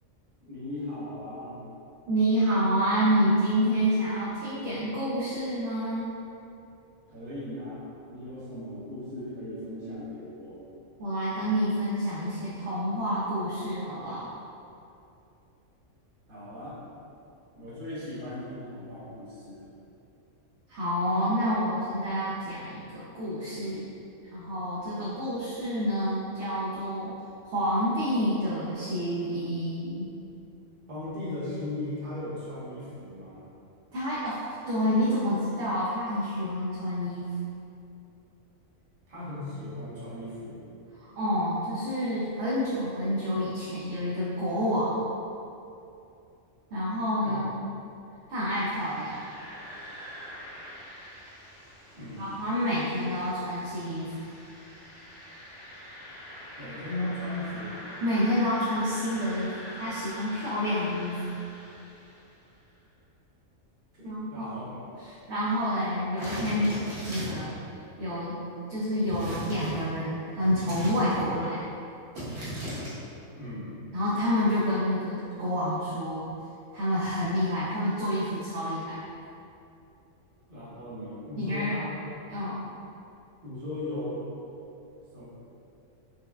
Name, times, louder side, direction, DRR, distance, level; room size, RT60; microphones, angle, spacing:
voice 1, 0.4-1.6 7.1-7.8 8.1-10.6 16.3-16.8 17.5-19.7 24.9-25.3 30.9-33.5 39.1-40.6 47.2-47.4 51.9-52.2 56.6-57.8 63.9-64.9 73.4-73.7 80.5-81.9 83.4-84.3 85.1-85.3, left 1 dB, 45° right, -10 dB, 1.0 m, -37 dB
voice 2, 2.1-6.1 11.0-14.3 20.7-23.8 24.3-27.1 27.5-30.0 33.9-37.3 41.0-45.0 46.7-47.6 48.3-49.2 52.2-54.2 58.0-61.2 64.0-64.5 65.0-66.8 67.1-67.6 68.0-68.4 68.7-71.6 73.9-76.3 76.7-79.0 81.4-81.8 82.3-82.6, equal, 65° right, -9 dB, 0.8 m, -28 dB
sound 1, 48.5-62.5, equal, 50° left, 1.2 m, -45 dB
sound 2, 66.2-67.5 69.1-69.8 70.4-71.3 72.1-72.9, right 1 dB, 90° right, 1.5 m, -36 dB
4.5 x 2.2 x 2.2 m, 2.7 s
omnidirectional pair, 1.4 m